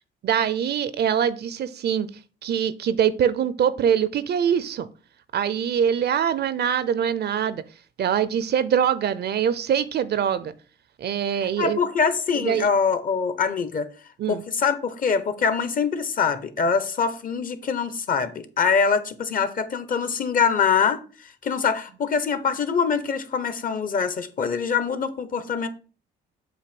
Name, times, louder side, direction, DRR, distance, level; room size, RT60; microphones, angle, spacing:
voice 1, 0.2-2.1 2.4-4.9 5.3-7.6 8.0-10.5 11.0-11.8 12.4-12.7 14.2-14.4, right 8 dB, 55° right, 0.5 m, -23 dB
voice 2, 11.6-13.9 14.3-25.7, left 6 dB, 45° left, 0.8 m, -24 dB
7.6 x 2.7 x 5.1 m
cardioid pair, 90°, 20 cm